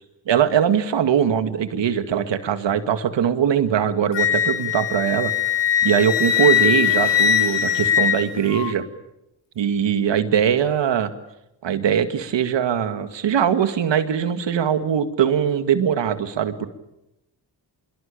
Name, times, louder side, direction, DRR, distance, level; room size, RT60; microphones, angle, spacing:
voice 1, 0.3-5.3 5.8-8.8 9.6-11.1 11.6-16.7, right 8 dB, 75° right, 10 dB, 2.2 m, -21 dB
Wind instrument woodwind instrument, 4.1-8.7, left 9 dB, 70° left, 2.9 m, -20 dB
25.0 x 23.0 x 8.7 m, 0.88 s
cardioid pair, 65°, 44 cm